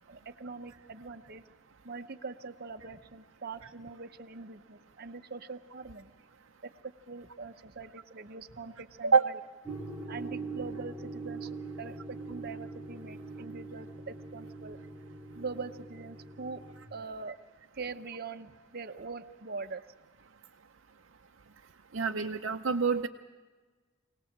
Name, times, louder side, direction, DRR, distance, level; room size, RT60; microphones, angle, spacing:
voice 1, 0.0-1.4 1.8-6.1 6.6-9.4 10.1-14.8 15.4-16.6 16.9-17.4 17.7-19.8, right 4 dB, 50° right, 8 dB, 0.8 m, -43 dB
sound 1, 9.6-16.9, right 3 dB, 10° right, 1.2 m, -42 dB
voice 2, 21.9-23.1, right 5 dB, 80° right, 2 dB, 0.7 m, -26 dB
24.5 x 18.5 x 7.3 m, 1.4 s
head